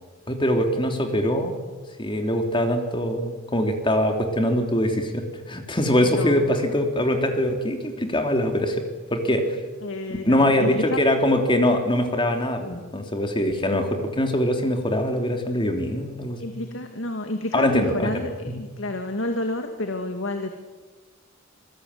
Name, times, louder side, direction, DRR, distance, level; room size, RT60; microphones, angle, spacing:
voice 1, 0.3-1.5 2.0-8.8 9.1-9.6 10.2-12.6 12.9-16.4 17.5-18.2, left 1 dB, 25° left, 5 dB, 3.1 m, -23 dB
voice 2, 6.1-6.4 9.8-11.0 12.6-12.9 16.4-20.5, left 1 dB, 65° left, 6 dB, 2.3 m, -30 dB
26.5 x 21.0 x 9.7 m, 1.3 s
head